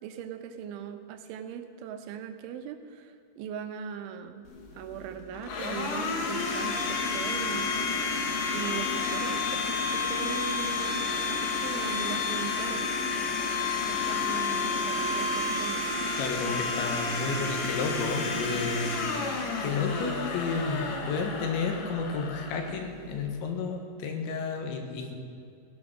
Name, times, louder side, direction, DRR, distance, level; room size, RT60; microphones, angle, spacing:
voice 1, 0.0-4.5 4.7-8.1 8.5-12.9 13.9-15.9, right 8 dB, 85° right, 7 dB, 3.4 m, -39 dB
Domestic sounds home sounds, 4.5-23.3, left 4 dB, 55° left, 2.8 m, -31 dB
voice 2, 16.2-25.2, left 4 dB, 75° left, 3 dB, 3.7 m, -32 dB
17.0 x 10.5 x 6.1 m, 2.5 s
omnidirectional pair, 5.4 m